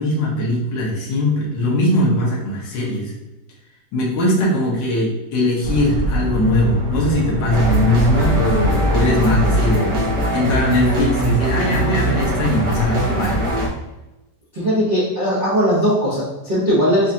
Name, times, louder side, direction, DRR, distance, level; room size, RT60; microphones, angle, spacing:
voice 1, 0.0-3.1 3.9-10.0 10.3-13.3, left 1 dB, 80° left, -5 dB, 1.7 m, -20 dB
sound 1, 5.6-11.4, equal, 55° right, 1.8 m, -24 dB
sound 2, 7.5-13.7, right 1 dB, 70° right, 1.6 m, -21 dB
voice 2, 14.5-17.1, equal, 30° right, -11 dB, 0.9 m, -18 dB
5.5 x 2.4 x 2.8 m, 1.0 s
omnidirectional pair, 2.0 m